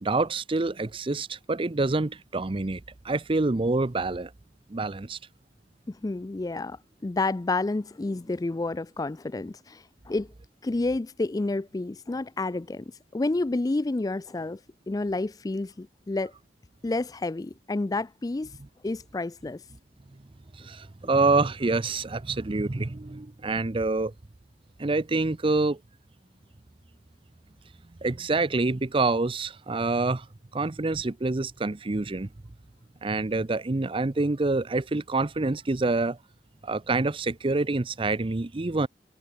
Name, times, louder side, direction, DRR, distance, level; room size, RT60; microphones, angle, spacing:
voice 1, 0.0-4.3 4.7-5.2 20.6-24.1 24.8-25.8 28.0-30.3 30.5-32.3 33.0-36.2 36.6-38.9, right 3 dB, 30° right, 0.6 m, -26 dB
voice 2, 5.9-10.3 10.6-14.6 14.9-16.3 16.8-18.5 18.8-19.6, left 2 dB, 20° left, 0.4 m, -30 dB
head